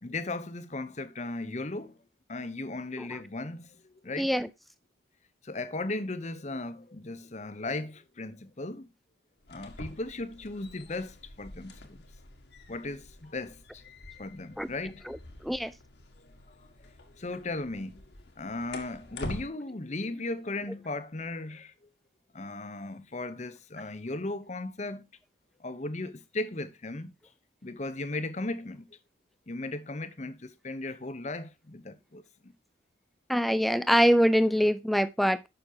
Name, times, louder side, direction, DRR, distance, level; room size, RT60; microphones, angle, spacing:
voice 1, 0.0-2.0 2.3-4.3 5.4-8.9 9.5-12.0 12.7-13.8 14.2-15.1 16.2-16.6 17.2-18.0 18.4-21.7 22.3-25.1 25.6-27.1 27.6-28.9 29.5-32.5, left 2 dB, 40° left, 0.8 m, -37 dB
voice 2, 4.2-4.5 14.6-14.7 15.1-15.2 15.4-15.7 33.3-35.5, equal, ahead, 0.4 m, -24 dB
sound 1, 9.4-19.5, left 2 dB, 65° left, 1.7 m, -46 dB
10.5 x 6.6 x 2.8 m
head